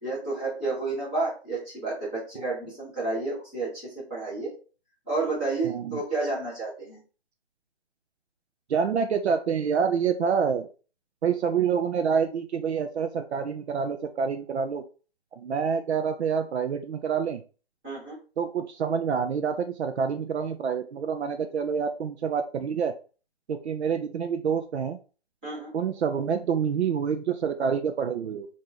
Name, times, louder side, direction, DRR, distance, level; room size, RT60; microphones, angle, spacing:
voice 1, 0.0-3.8 4.1-4.5 5.1-7.0 17.8-18.2 25.4-25.7, right 3 dB, 10° right, -11 dB, 0.8 m, -30 dB
voice 2, 5.6-6.0 8.7-10.7 11.2-14.8 15.4-17.4 18.4-22.9 23.5-25.0 25.7-28.5, right 6 dB, 85° right, 6 dB, 0.5 m, -27 dB
2.9 x 2.6 x 3.8 m, 0.37 s
hypercardioid pair, 175°, 33 cm